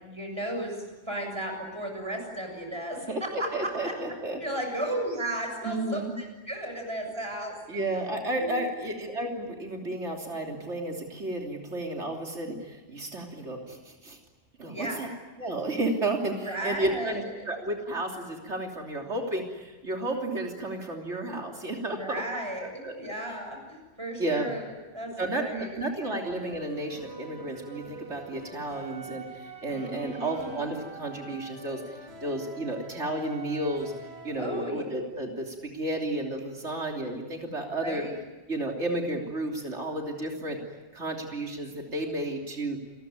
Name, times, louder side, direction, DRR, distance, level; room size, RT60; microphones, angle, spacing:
voice 1, 0.0-3.1 3.4-3.9 4.4-7.9 8.4-8.7 14.7-15.0 16.4-17.2 21.9-25.8 29.6-30.9 34.4-34.8 37.7-38.1, right 1 dB, 25° right, 3 dB, 7.2 m, -35 dB
voice 2, 3.5-4.4 5.6-6.1 7.7-14.2 14.6-15.1 15.4-22.2 22.6-22.9 24.2-24.5 25.2-33.9 34.2-38.0 38.5-40.6 40.9-42.8, right 1 dB, 90° right, 1 dB, 3.6 m, -32 dB
sound 1, 26.0-34.4, right 4 dB, 65° right, 3.4 m, -45 dB
29.0 x 21.5 x 9.6 m, 1.2 s
omnidirectional pair, 1.1 m